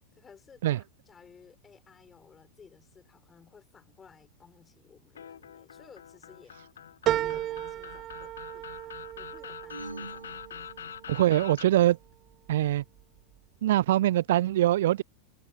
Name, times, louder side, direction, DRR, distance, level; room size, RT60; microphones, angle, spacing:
voice 1, 0.0-6.6 7.1-10.8, left 6 dB, 20° left, 7.1 m, -56 dB
sound 1, 5.2-11.7, left 8 dB, 65° left, 2.0 m, -45 dB
sound 2, 7.1-11.8 12.3-13.0 13.4-13.5, right 13 dB, 35° right, 1.4 m, -35 dB
sound 3, 9.7-11.4, right 2 dB, 80° right, 1.1 m, -45 dB
voice 2, 11.1-12.0 12.5-12.8 13.6-15.0, right 13 dB, 55° right, 0.3 m, -23 dB
figure-of-eight pair, 90°, 0 cm